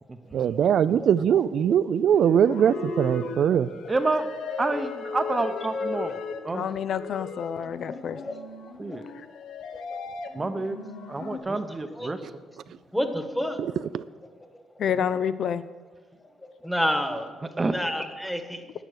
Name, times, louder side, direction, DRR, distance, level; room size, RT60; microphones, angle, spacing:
voice 1, 0.3-3.7 13.9-14.0, right 9 dB, 65° right, 14 dB, 0.4 m, -21 dB
voice 2, 1.0-1.4 1.7-1.8 2.1-2.2 3.5-3.7 6.0-6.1 6.5-6.6 7.2-8.4 8.6-9.0 9.7-10.0 11.9-12.1 14.0-14.1 14.4-14.8 16.2-16.7, left 2 dB, 20° left, 5 dB, 1.8 m, -44 dB
sound 1, 2.0-11.4, left 4 dB, 85° left, 1.1 m, -36 dB
voice 3, 3.9-4.3 4.6-6.1 6.4-6.7 8.8-9.0 10.3-10.8 11.1-12.2 17.6-17.7, right 3 dB, 20° right, 8 dB, 0.7 m, -28 dB
voice 4, 6.5-8.2 14.8-15.6, left 8 dB, 60° left, 13 dB, 0.4 m, -28 dB
voice 5, 11.5-12.1 12.9-13.6 16.6-17.3 17.7-18.7, equal, 5° left, 7 dB, 1.3 m, -29 dB
11.0 x 9.2 x 6.4 m, 1.4 s
cardioid pair, 105°, 0 cm